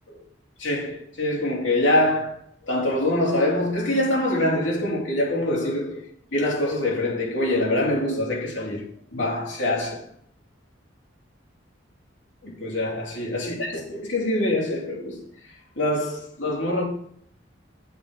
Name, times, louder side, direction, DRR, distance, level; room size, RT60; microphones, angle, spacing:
voice 1, 0.6-2.4 2.7-6.0 6.3-8.8 9.1-10.0 12.4-15.2 15.8-16.8, left 1 dB, 80° left, 3.0 m, -24 dB
8.2 x 6.7 x 5.1 m
head